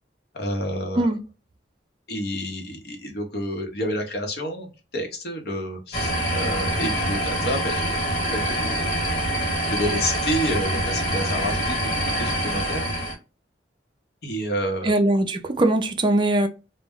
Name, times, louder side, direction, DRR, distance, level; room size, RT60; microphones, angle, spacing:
voice 1, 0.3-1.1 2.1-9.0 9.7-12.9 14.2-14.9, equal, 60° left, 0.8 m, -29 dB
sound 1, 5.9-13.1, equal, 45° left, 1.3 m, -25 dB
voice 2, 14.8-16.5, right 1 dB, 25° right, 0.4 m, -21 dB
2.1 x 2.0 x 3.5 m
head